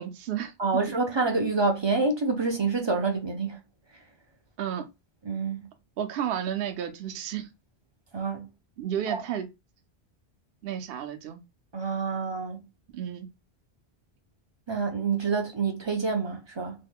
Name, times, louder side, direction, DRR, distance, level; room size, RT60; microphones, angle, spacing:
voice 1, 0.0-0.5 4.6-4.9 6.0-7.5 8.8-9.5 10.6-11.4 12.9-13.3, right 9 dB, 70° right, 0.8 m, -32 dB
voice 2, 0.6-3.6 5.2-5.6 8.1-8.5 9.1-9.2 11.7-12.6 14.7-16.7, right 4 dB, 40° right, 0.4 m, -27 dB
3.0 x 2.1 x 3.4 m
omnidirectional pair, 1.1 m